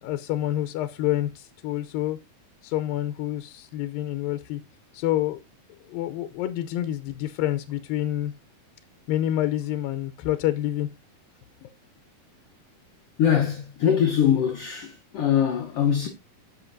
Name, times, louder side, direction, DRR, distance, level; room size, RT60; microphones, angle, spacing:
voice 1, 0.0-2.2 2.6-4.6 4.9-5.4 5.9-8.3 9.1-10.9 11.6-11.7, left 13 dB, 90° left, 2.5 m, -27 dB
voice 2, 13.2-16.1, left 9 dB, 70° left, 1.4 m, -22 dB
15.5 x 5.7 x 2.6 m
omnidirectional pair, 4.0 m